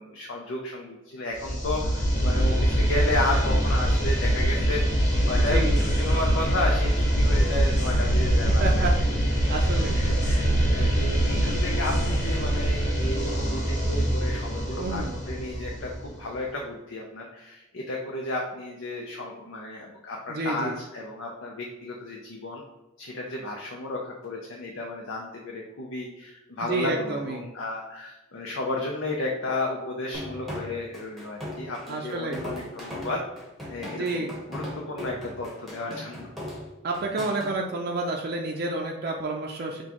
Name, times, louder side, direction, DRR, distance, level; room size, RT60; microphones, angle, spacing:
voice 1, 0.0-4.9 5.3-5.6 6.0-8.9 9.9-22.6 23.0-33.2 33.7-36.3, left 2 dB, 85° left, -1 dB, 0.6 m, -33 dB
sound 1, 1.4-16.2, equal, 40° left, 1.2 m, -23 dB
voice 2, 5.5-5.8 8.5-8.9 9.5-10.1 14.8-15.2 20.3-20.8 26.6-27.4 31.9-32.4 34.0-34.3 36.8-39.8, right 2 dB, 50° right, 0 dB, 0.4 m, -30 dB
sound 2, 30.1-37.5, left 1 dB, ahead, 0.9 m, -38 dB
6.1 x 2.3 x 2.9 m, 1.1 s
head